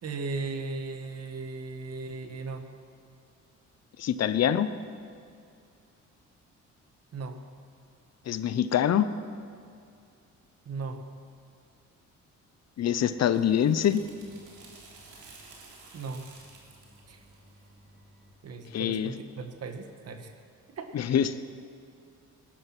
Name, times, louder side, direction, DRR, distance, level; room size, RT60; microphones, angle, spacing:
voice 1, 0.0-2.7 7.1-7.4 10.6-11.0 15.9-16.3 17.1-17.2 18.4-20.4 20.7-20.9, right 4 dB, 55° right, 7 dB, 1.6 m, -37 dB
voice 2, 4.0-4.7 8.3-9.1 12.8-14.0 18.7-19.1 20.9-21.3, left 9 dB, 60° left, 13 dB, 0.8 m, -24 dB
sound 1, 12.9-18.4, right 3 dB, 85° right, 3.3 m, -53 dB
19.5 x 11.0 x 6.1 m, 2.4 s
cardioid pair, 90°, 30 cm